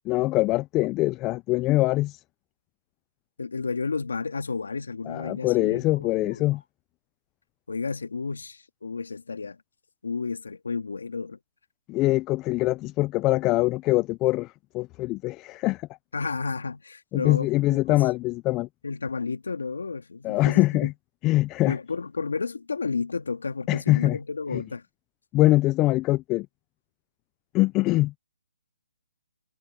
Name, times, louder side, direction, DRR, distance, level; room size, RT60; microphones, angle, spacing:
voice 1, 0.1-2.2 5.1-6.6 11.9-15.9 17.1-18.7 20.2-20.9 21.2-21.8 23.7-24.2 24.5-24.6 25.3-26.5 27.5-28.2, left 18 dB, 15° left, 0.3 m, -23 dB
voice 2, 3.4-6.4 7.7-9.6 10.0-11.4 16.1-18.0 18.8-20.9 21.6-24.9, left 4 dB, 85° left, 2.0 m, -32 dB
hypercardioid pair, 165°, 0 cm